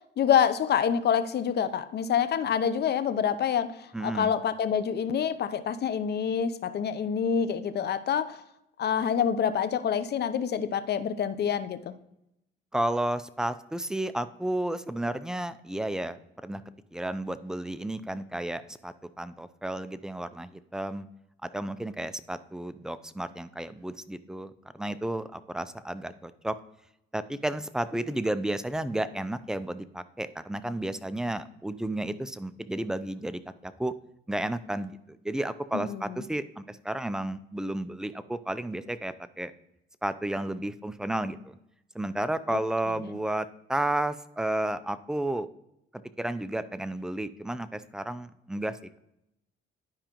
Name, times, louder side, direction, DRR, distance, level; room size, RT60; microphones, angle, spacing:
voice 1, 0.2-8.4 8.8-11.9 35.7-36.2 42.5-42.6 43.0-43.2, left 8 dB, 55° left, 12 dB, 0.6 m, -27 dB
voice 2, 3.9-4.3 12.7-16.6 16.9-21.1 21.4-26.6 27.1-33.9 34.3-39.5 40.0-41.6 41.9-45.5 45.9-49.0, right 1 dB, 5° right, 13 dB, 0.4 m, -32 dB
11.5 x 4.9 x 2.9 m, 0.84 s
cardioid pair, 90°, 20 cm